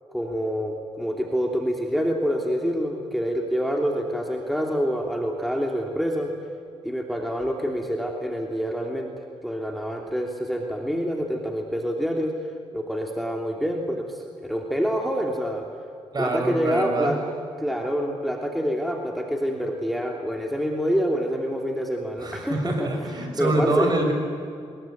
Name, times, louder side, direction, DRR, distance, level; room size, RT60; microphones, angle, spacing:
voice 1, 0.1-6.3 6.8-9.1 9.4-12.3 12.7-15.6 16.2-17.2 17.6-22.9 23.4-23.9, equal, ahead, 1 dB, 3.2 m, -26 dB
voice 2, 16.1-17.2 22.2-24.1, right 2 dB, 40° right, 4 dB, 6.5 m, -25 dB
24.0 x 21.5 x 9.4 m, 2.4 s
cardioid pair, 80°, 11 cm